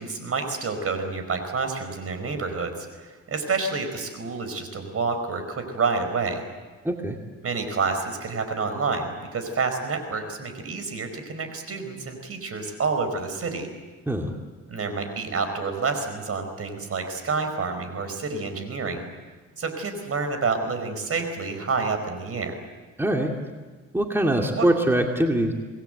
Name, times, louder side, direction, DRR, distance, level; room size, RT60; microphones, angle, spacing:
voice 1, 0.0-6.4 7.4-13.7 14.7-19.0 19.6-22.6 24.5-24.7, right 4 dB, 50° right, 7 dB, 4.7 m, -28 dB
voice 2, 6.8-7.2 14.1-14.3 23.0-23.3 23.9-25.5, right 1 dB, 5° right, 2 dB, 2.4 m, -23 dB
26.0 x 20.0 x 7.9 m, 1.4 s
cardioid pair, 90°, 30 cm